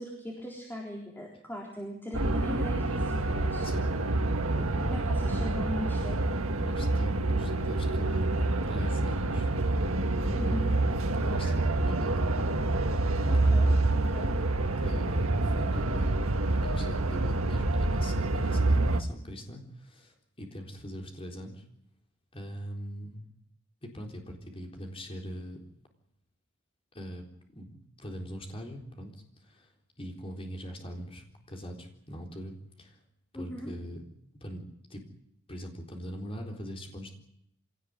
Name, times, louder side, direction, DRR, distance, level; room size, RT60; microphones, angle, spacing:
voice 1, 0.0-3.7 4.5-6.4 10.3-10.7 13.3-13.7 14.1-14.3 33.3-33.7, equal, 10° left, -1 dB, 3.9 m, -39 dB
sound 1, 2.1-19.0, right 2 dB, 85° right, 1.7 m, -27 dB
voice 2, 6.6-9.5 10.3-12.3 13.3-13.5 14.8-16.3 16.6-21.7 22.3-23.3 23.8-25.6 26.9-27.2 27.5-29.7 30.0-33.0 33.3-34.0 34.4-34.6 34.9-35.0 35.5-37.1, equal, 25° left, 2 dB, 4.0 m, -41 dB
25.0 x 18.0 x 9.7 m, 0.74 s
head